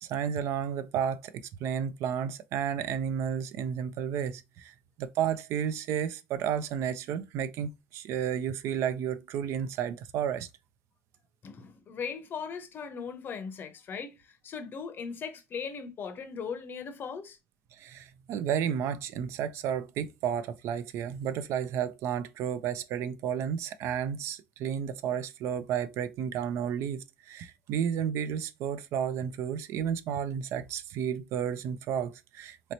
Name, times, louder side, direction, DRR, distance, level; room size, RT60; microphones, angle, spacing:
voice 1, 0.0-10.5 17.7-32.7, right 8 dB, 65° right, 0.4 m, -32 dB
voice 2, 11.4-14.2 14.4-17.4, left 6 dB, 45° left, 0.6 m, -38 dB
3.2 x 2.8 x 2.6 m
cardioid pair, 100°, 5 cm